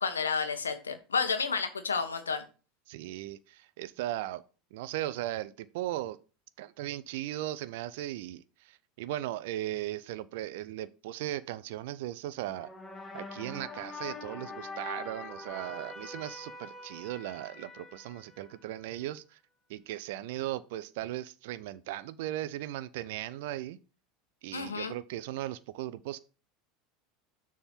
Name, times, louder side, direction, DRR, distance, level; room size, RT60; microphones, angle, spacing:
voice 1, 0.0-2.4 24.5-24.9, left 5 dB, 85° left, 1.0 m, -31 dB
voice 2, 2.9-4.4 4.7-6.2 6.6-12.7 13.1-19.4 19.7-23.8 24.4-26.2, right 14 dB, 65° right, 0.4 m, -37 dB
sound 1, 12.5-18.9, left 3 dB, 15° left, 1.4 m, -44 dB
6.9 x 3.5 x 5.7 m
hypercardioid pair, 80°, 0 cm